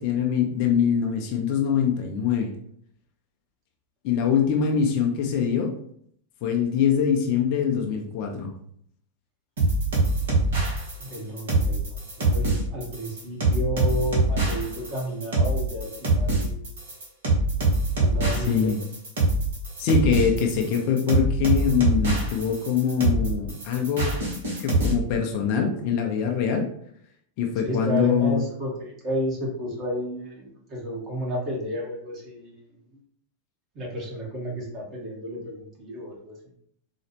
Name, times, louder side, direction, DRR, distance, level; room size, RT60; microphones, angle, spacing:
voice 1, 0.0-2.5 4.0-5.7 6.4-8.5 18.5-18.8 19.8-24.2 24.6-26.7 27.4-28.4, left 7 dB, 45° left, 2 dB, 0.5 m, -23 dB
sound 1, 9.6-24.9, right 2 dB, 60° right, 1.3 m, -24 dB
voice 2, 11.1-16.6 18.0-18.7 27.6-32.7 33.7-36.4, equal, 30° right, -3 dB, 1.4 m, -32 dB
4.2 x 2.4 x 3.1 m, 0.66 s
figure-of-eight pair, 90°, 0 cm